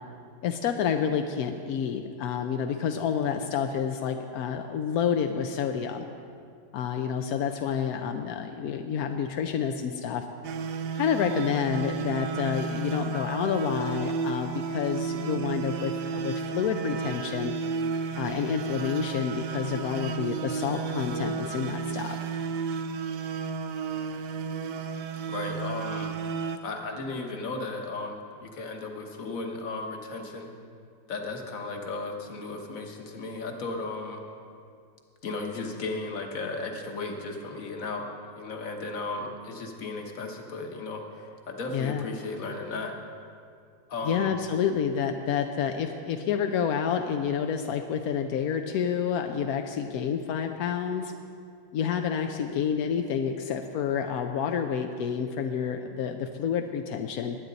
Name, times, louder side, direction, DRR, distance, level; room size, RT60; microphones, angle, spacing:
voice 1, 0.4-6.0 6.7-10.2 11.0-17.5 18.2-22.2 41.7-42.0 44.0-51.1 51.7-57.4, left 7 dB, 70° left, 5 dB, 0.9 m, -29 dB
sound 1, 10.4-26.6, right 5 dB, 70° right, 1.1 m, -32 dB
voice 2, 25.3-26.1 26.6-30.5 31.1-34.2 35.2-38.1 38.4-42.9 43.9-44.3, left 3 dB, 50° left, 3 dB, 1.5 m, -35 dB
20.5 x 9.6 x 4.0 m, 2.3 s
omnidirectional pair, 2.0 m